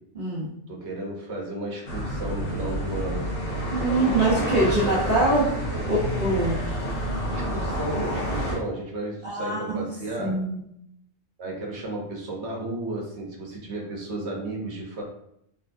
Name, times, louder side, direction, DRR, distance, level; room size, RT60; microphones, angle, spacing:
voice 1, 0.1-0.5 3.7-5.5 5.9-6.6 9.2-9.9 10.2-10.6, right 2 dB, 40° right, -8 dB, 1.2 m, -24 dB
voice 2, 0.7-3.3 3.9-5.9 6.8-7.0 7.3-10.3 11.4-15.0, right 2 dB, 60° right, -1 dB, 1.3 m, -34 dB
sound 1, 1.9-8.6, equal, 45° left, 1.4 m, -29 dB
4.5 x 3.2 x 2.7 m, 0.75 s
omnidirectional pair, 1.3 m